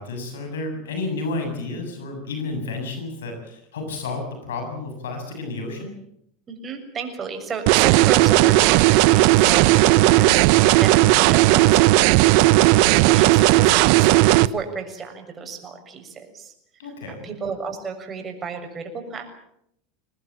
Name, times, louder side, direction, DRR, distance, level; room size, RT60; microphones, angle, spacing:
voice 1, 0.0-6.0 16.8-17.3, left 3 dB, 85° left, 5 dB, 7.4 m, -31 dB
voice 2, 6.5-11.9 12.8-16.5 16.8-19.2, right 5 dB, 30° right, 5 dB, 6.9 m, -33 dB
sound 1, 7.7-14.5, right 17 dB, 65° right, 0.8 m, -15 dB
23.5 x 19.5 x 8.8 m, 0.77 s
hypercardioid pair, 90°, 0 cm